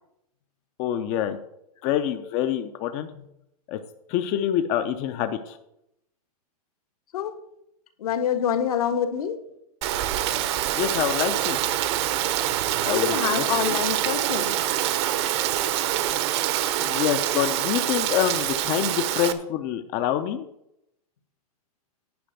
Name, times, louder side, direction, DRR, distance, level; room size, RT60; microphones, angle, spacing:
voice 1, 0.8-1.4 1.8-3.1 3.7-3.8 4.1-5.6 10.7-11.6 12.8-13.8 16.8-20.5, left 10 dB, 30° left, 8 dB, 0.6 m, -26 dB
voice 2, 8.0-9.4 12.8-14.6, left 8 dB, 70° left, 7 dB, 1.4 m, -26 dB
Rain, 9.8-19.3, right 12 dB, 45° right, 0.9 m, -25 dB
10.5 x 5.1 x 7.8 m, 0.80 s
hypercardioid pair, 150°, 20 cm